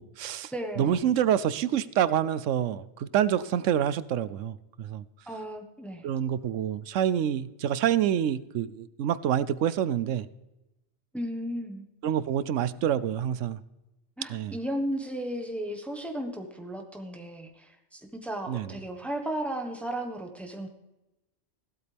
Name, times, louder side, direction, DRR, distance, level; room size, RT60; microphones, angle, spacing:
voice 1, 0.0-0.5 0.8-5.0 6.0-10.3 12.0-13.6 14.3-14.5 18.5-18.7, right 10 dB, 80° right, 17 dB, 0.9 m, -27 dB
voice 2, 0.5-1.0 5.3-6.1 11.1-11.8 14.2-20.7, right 1 dB, ahead, 3 dB, 1.3 m, -35 dB
15.5 x 12.5 x 3.4 m, 0.97 s
omnidirectional pair, 1.3 m